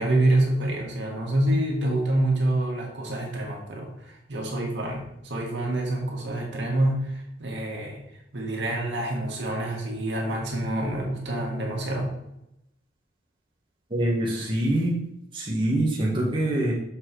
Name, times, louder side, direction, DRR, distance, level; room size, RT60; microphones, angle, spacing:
voice 1, 0.0-8.0 8.3-12.1, right 1 dB, 65° right, -1 dB, 1.9 m, -27 dB
voice 2, 13.9-15.0 15.3-16.7, right 1 dB, 25° right, -4 dB, 1.3 m, -24 dB
6.8 x 4.3 x 4.7 m, 0.84 s
head